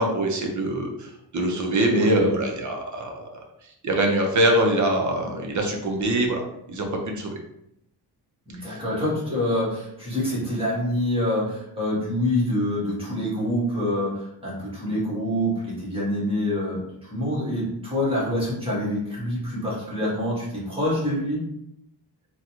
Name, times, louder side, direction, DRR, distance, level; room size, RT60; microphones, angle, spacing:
voice 1, 0.0-3.2 3.8-6.4 6.7-7.3 8.6-8.8, right 1 dB, 45° right, 2 dB, 0.6 m, -23 dB
voice 2, 1.9-2.3 8.5-21.4, left 1 dB, 15° right, -7 dB, 1.4 m, -26 dB
3.7 x 2.3 x 2.9 m, 0.79 s
wide cardioid pair, 155°, 41 cm